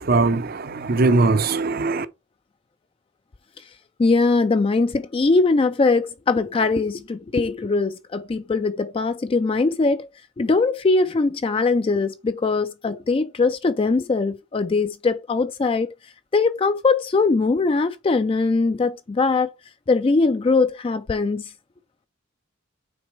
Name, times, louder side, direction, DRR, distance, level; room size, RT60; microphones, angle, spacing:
voice 1, 0.0-2.1, right 3 dB, 50° right, 0.6 m, -20 dB
voice 2, 4.0-10.1 10.4-15.9 16.3-19.5 19.9-21.5, left 3 dB, 25° left, 0.3 m, -21 dB
6.2 x 4.1 x 4.4 m
head